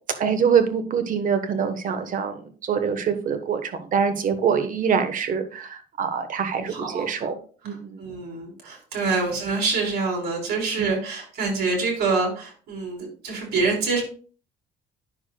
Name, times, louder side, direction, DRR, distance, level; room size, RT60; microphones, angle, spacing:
voice 1, 0.2-7.3 7.6-8.0 10.8-10.9, right 6 dB, 50° right, 9 dB, 1.1 m, -24 dB
voice 2, 6.6-7.3 7.6-14.0, right 4 dB, 70° right, 0 dB, 3.8 m, -26 dB
9.6 x 6.5 x 2.2 m, 0.41 s
cardioid pair, 110°, 17 cm